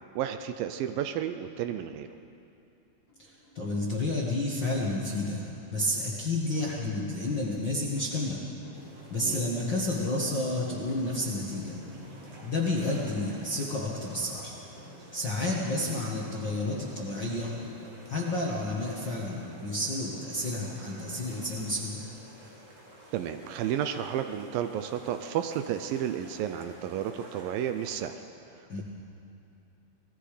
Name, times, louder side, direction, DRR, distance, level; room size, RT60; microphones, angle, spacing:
voice 1, 0.2-2.1 9.2-9.4 23.1-28.2, right 10 dB, 85° right, 8 dB, 2.0 m, -32 dB
sound 1, 3.0-21.7, equal, 20° left, 5.4 m, -51 dB
voice 2, 3.2-5.4 5.7-8.4 9.1-11.7 12.4-14.6 15.1-17.5 18.1-22.0 28.7-28.8, left 2 dB, 50° left, -4 dB, 1.4 m, -30 dB
sound 2, 8.7-28.1, right 1 dB, 60° right, 5.1 m, -52 dB
26.0 x 20.0 x 5.0 m, 2.8 s
omnidirectional pair, 4.9 m